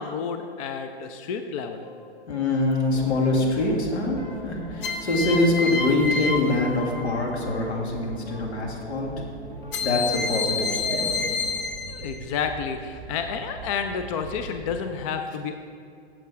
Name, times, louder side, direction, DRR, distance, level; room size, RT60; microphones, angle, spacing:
voice 1, 0.0-1.9 11.9-15.5, left 6 dB, 30° left, 7 dB, 0.4 m, -30 dB
sound 1, 1.7-2.3 4.8-7.5 9.7-12.3, left 4 dB, 55° left, 0.8 m, -29 dB
voice 2, 2.3-4.2 4.4-9.1 9.8-11.2, left 2 dB, 75° left, 0 dB, 2.0 m, -24 dB
sound 2, 2.9-11.6, equal, 10° left, 2.1 m, -42 dB
sound 3, 2.9-14.9, right 4 dB, 20° right, 1.8 m, -41 dB
8.2 x 7.3 x 4.7 m, 2.4 s
hypercardioid pair, 130°, 33 cm